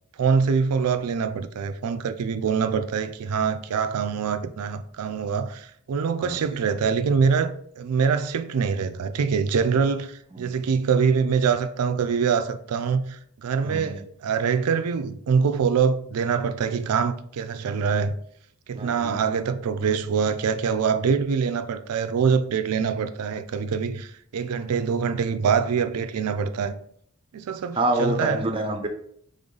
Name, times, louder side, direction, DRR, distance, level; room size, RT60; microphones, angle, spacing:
voice 1, 0.2-18.1 18.7-26.7 27.3-28.4, right 6 dB, 85° right, 0.4 m, -24 dB
voice 2, 13.6-14.0 18.7-19.2 27.8-28.9, right 1 dB, 25° right, 0.6 m, -27 dB
3.8 x 3.6 x 3.8 m
head